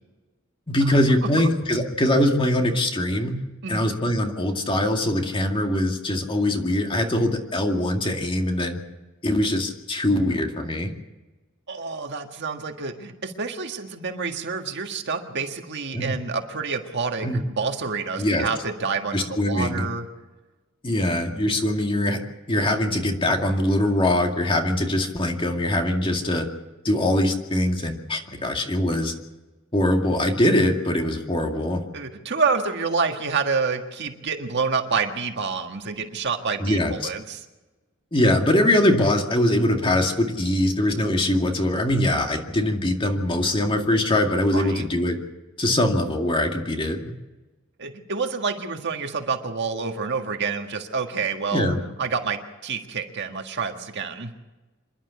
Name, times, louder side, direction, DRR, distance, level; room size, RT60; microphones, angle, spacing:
voice 1, 0.7-3.4 3.7-8.8 9.2-10.9 15.9-16.2 17.2-17.4 18.2-18.5 19.1-19.8 20.8-22.2 22.5-26.5 26.8-29.1 29.7-31.8 36.6-36.9 38.1-45.2 45.6-47.1 51.5-51.8, left 1 dB, 25° left, 3 dB, 2.2 m, -22 dB
voice 2, 11.7-17.3 17.6-20.1 31.9-37.4 44.5-44.8 47.8-51.7 52.0-54.3, right 5 dB, 55° right, 5 dB, 1.7 m, -28 dB
27.0 x 11.5 x 8.4 m, 1.2 s
head